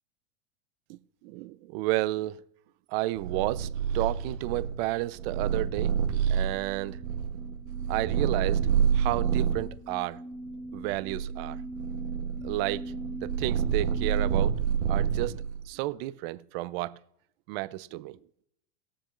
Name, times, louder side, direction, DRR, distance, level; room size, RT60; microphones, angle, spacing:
voice 1, 0.9-2.4 2.9-3.7 3.9-6.0 6.3-7.0 7.9-10.2 10.7-11.6 12.4-12.9 13.2-14.6 14.9-17.0 17.5-18.2, right 18 dB, 55° right, 0.7 m, -32 dB
Purr, 3.2-9.7 10.4-15.6, right 7 dB, 70° right, 1.7 m, -28 dB
sound 1, 6.2-14.3, right 1 dB, 75° left, 4.8 m, -43 dB
20.5 x 7.0 x 2.5 m
hypercardioid pair, 110°, 34 cm